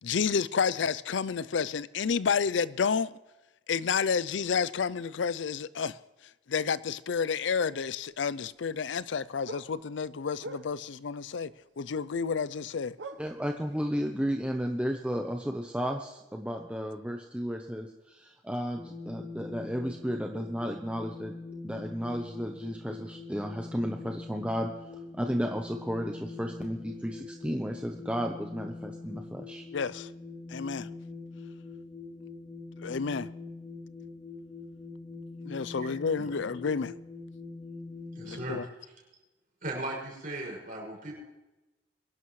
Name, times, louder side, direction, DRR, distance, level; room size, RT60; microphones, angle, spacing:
voice 1, 0.0-3.1 3.7-6.0 6.5-11.5 11.8-13.0 29.7-30.1 30.5-30.9 32.8-33.3 35.5-36.9 38.2-38.6, left 6 dB, 70° left, 0.5 m, -30 dB
sound 1, 7.8-8.7 9.0-11.1 11.9-12.3 12.5-12.7 13.0-13.9 14.2-14.3 14.9-15.0, right 2 dB, 70° right, 1.0 m, -44 dB
voice 2, 13.2-21.4 21.6-29.6, equal, 5° right, 0.7 m, -33 dB
sound 2, 18.8-38.5, left 3 dB, 15° left, 2.6 m, -44 dB
voice 3, 38.1-38.9 39.6-41.2, right 2 dB, 45° right, 6.0 m, -38 dB
23.5 x 11.5 x 3.2 m
head